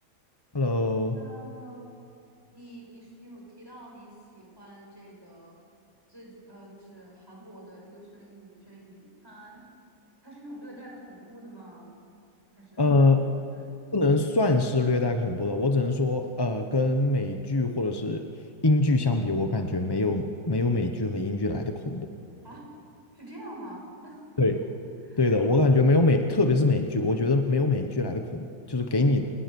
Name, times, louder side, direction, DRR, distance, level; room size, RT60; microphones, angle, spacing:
voice 1, 0.5-1.2 12.8-13.3 13.9-22.1 24.4-24.6 25.2-29.2, left 2 dB, 25° left, 5 dB, 0.6 m, -24 dB
voice 2, 1.1-1.9 2.5-5.6 6.1-9.6 10.2-11.9 12.5-13.0 13.5-13.8 22.4-22.7 23.1-24.2 25.0-25.2 28.8-29.1, right 1 dB, 10° right, -3 dB, 6.6 m, -46 dB
28.5 x 19.0 x 7.0 m, 2.4 s
omnidirectional pair, 2.0 m